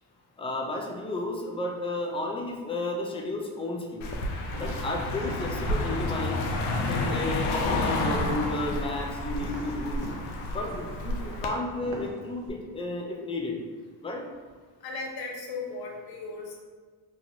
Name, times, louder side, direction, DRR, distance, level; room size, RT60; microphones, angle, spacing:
voice 1, 0.4-4.1 4.6-6.4 6.8-10.0 10.5-13.6 14.0-14.3, left 2 dB, 10° left, 0 dB, 0.4 m, -32 dB
Car passing by, 4.0-11.5, left 2 dB, 80° left, 0.6 m, -30 dB
sound 1, 4.5-12.5, right 2 dB, 60° right, 0.8 m, -43 dB
voice 2, 14.8-16.6, left 3 dB, 50° left, 0 dB, 0.8 m, -37 dB
2.9 x 2.5 x 2.7 m, 1.5 s
supercardioid pair, 70°, 49 cm